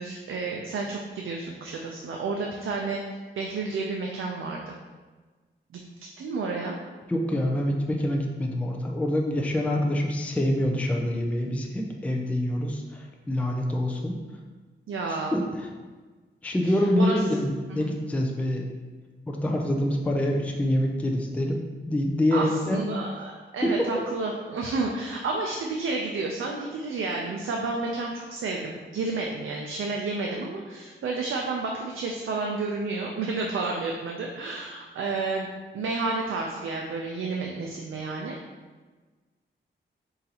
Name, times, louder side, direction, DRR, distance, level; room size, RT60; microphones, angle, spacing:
voice 1, 0.0-3.0 3.4-4.7 5.7-5.8 6.2-6.8 14.9-15.4 16.6-17.2 17.7-17.9 22.3-35.5 35.7-38.4, right 3 dB, 90° right, 0 dB, 0.5 m, -31 dB
voice 2, 7.1-14.2 15.3-15.7 16.4-18.7 19.3-21.6 21.9-22.9 23.6-24.0, left 1 dB, 5° left, 1 dB, 0.3 m, -26 dB
4.0 x 3.8 x 2.8 m, 1.3 s
wide cardioid pair, 160°, 20 cm